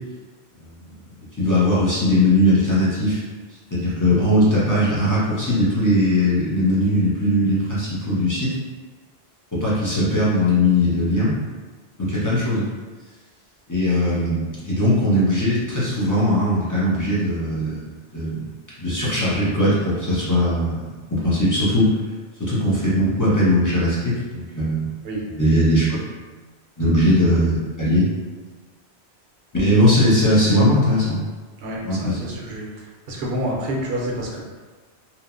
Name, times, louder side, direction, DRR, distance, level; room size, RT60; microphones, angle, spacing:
voice 1, 1.4-3.2 3.7-8.6 9.5-11.4 12.0-12.7 13.7-17.8 18.1-18.5 18.8-21.9 22.4-24.9 25.3-25.9 26.8-28.1 29.5-31.2 31.8-32.3, left 1 dB, 25° left, -9 dB, 0.5 m, -19 dB
voice 2, 31.6-32.7 33.1-34.4, right 1 dB, 65° right, -2 dB, 0.8 m, -28 dB
2.9 x 2.1 x 2.4 m, 1.4 s
omnidirectional pair, 1.1 m